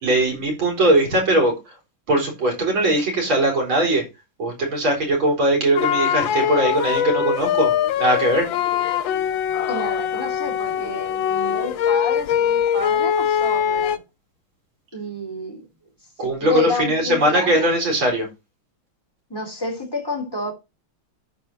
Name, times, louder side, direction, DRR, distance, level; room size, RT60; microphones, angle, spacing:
voice 1, 0.0-1.7 2.1-4.0 4.4-7.7 8.0-8.5 16.2-18.3, right 1 dB, 70° right, 4.7 m, -20 dB
sound 1, 5.8-14.0, left 9 dB, 70° left, 1.4 m, -22 dB
voice 2, 9.7-14.0 14.9-15.7 16.2-17.7 19.3-20.5, left 2 dB, 10° left, 2.9 m, -29 dB
13.5 x 4.7 x 4.3 m
omnidirectional pair, 2.4 m